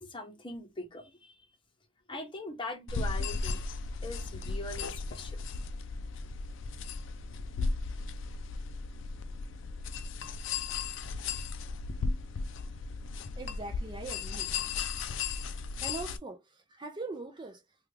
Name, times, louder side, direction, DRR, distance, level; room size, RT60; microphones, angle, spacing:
voice 1, 0.0-1.4 2.1-3.6 4.0-5.4, left 2 dB, 25° left, 0.8 m, -41 dB
sound 1, 2.9-16.2, left 4 dB, 70° left, 0.4 m, -36 dB
voice 2, 13.4-14.5 15.8-17.6, right 3 dB, 25° right, 0.4 m, -41 dB
3.4 x 2.3 x 3.2 m
head